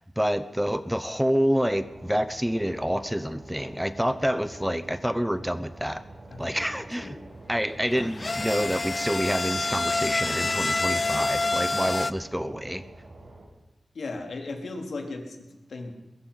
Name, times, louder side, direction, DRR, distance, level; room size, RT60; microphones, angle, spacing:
voice 1, 0.0-6.0 6.4-7.2 7.5-12.8, equal, 5° right, 13 dB, 0.9 m, -27 dB
sound 1, 1.6-13.4, right 2 dB, 50° right, 7.6 m, -47 dB
voice 2, 6.3-7.2 13.9-15.9, left 3 dB, 75° left, 3 dB, 3.9 m, -37 dB
sound 2, 7.8-12.1, left 3 dB, 35° left, 0.8 m, -27 dB
22.5 x 21.5 x 5.8 m, 0.98 s
wide cardioid pair, 100°, 0 cm